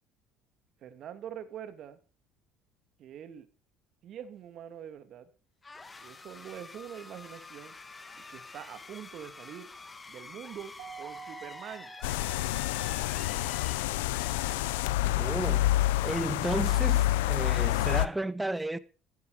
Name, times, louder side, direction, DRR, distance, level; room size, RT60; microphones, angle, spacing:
voice 1, 0.8-2.0 3.0-3.5 4.0-5.3 6.0-9.7 10.1-11.9, right 9 dB, 55° right, 2.4 m, -44 dB
sound 1, 5.6-15.2, left 3 dB, 25° left, 2.4 m, -48 dB
Keyboard (musical), 10.8-13.0, right 7 dB, 75° right, 4.5 m, -48 dB
sound 2, 12.0-18.1, left 15 dB, 85° left, 0.8 m, -28 dB
voice 2, 15.1-15.7 16.0-18.8, right 2 dB, 10° right, 1.5 m, -33 dB
15.5 x 12.5 x 5.1 m
hypercardioid pair, 75°, 0 cm